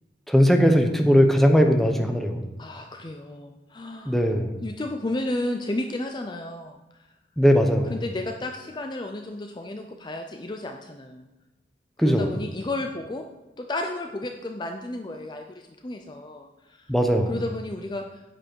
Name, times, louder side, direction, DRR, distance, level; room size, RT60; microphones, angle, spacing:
voice 1, 0.3-2.4 4.1-4.6 7.4-7.9 12.0-12.3 16.9-17.3, equal, ahead, 4 dB, 0.8 m, -19 dB
voice 2, 2.6-4.3 4.6-7.1 7.9-11.3 12.0-13.3 13.6-16.9 17.3-18.2, left 2 dB, 25° left, 4 dB, 0.5 m, -33 dB
9.7 x 7.6 x 4.6 m, 1.1 s
head